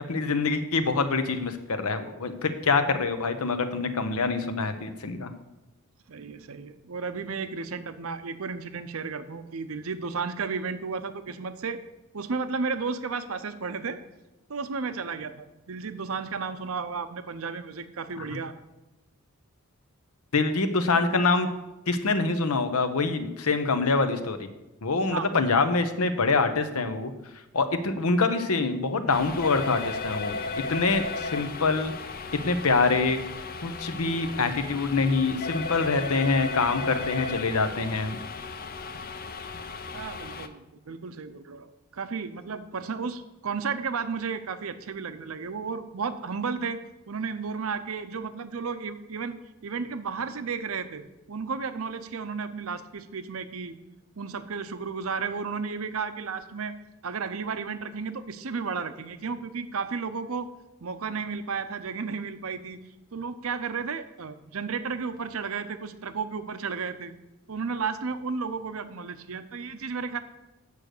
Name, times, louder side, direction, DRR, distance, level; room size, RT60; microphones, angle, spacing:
voice 1, 0.1-5.3 18.2-18.3 20.3-21.5 21.9-24.5 24.8-27.1 27.5-30.4 30.7-31.9 32.4-33.2 33.6-38.2, left 3 dB, 80° left, 9 dB, 0.9 m, -25 dB
voice 2, 6.1-11.8 12.1-14.0 14.5-18.5 25.1-25.3 39.9-46.8 47.1-51.0 51.3-53.8 54.2-56.7 57.0-60.5 60.8-62.8 63.1-67.1 67.5-70.2, right 5 dB, 70° right, 10 dB, 0.7 m, -33 dB
sound 1, 29.1-40.5, left 4 dB, 45° left, 0.6 m, -35 dB
8.4 x 6.3 x 6.6 m, 0.99 s
head